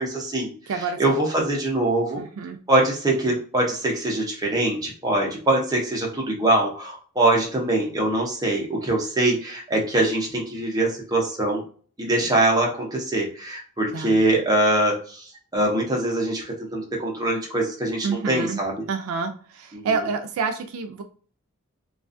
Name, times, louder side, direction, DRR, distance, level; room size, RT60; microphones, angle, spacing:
voice 1, 0.0-2.2 2.7-11.6 12.0-18.7 19.7-19.9, right 1 dB, 15° right, -2 dB, 0.6 m, -23 dB
voice 2, 0.7-1.2 2.2-2.6 13.9-14.2 18.0-18.6 18.9-21.0, right 5 dB, 80° right, 7 dB, 0.3 m, -28 dB
2.3 x 2.3 x 2.5 m, 0.42 s
head